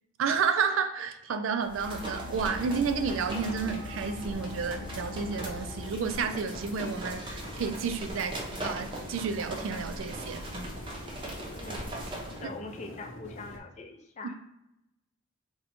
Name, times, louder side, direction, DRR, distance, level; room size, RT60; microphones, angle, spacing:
voice 1, 0.2-10.4, right 5 dB, 80° right, 0.3 m, -31 dB
sound 1, 1.6-12.4, right 1 dB, 25° right, 0.5 m, -40 dB
sound 2, 1.8-5.9, left 4 dB, 5° left, 0.8 m, -43 dB
sound 3, 2.5-13.6, left 1 dB, 85° left, 0.6 m, -45 dB
voice 2, 11.5-11.9 12.3-14.3, left 3 dB, 35° left, 0.4 m, -43 dB
2.8 x 2.2 x 4.1 m
head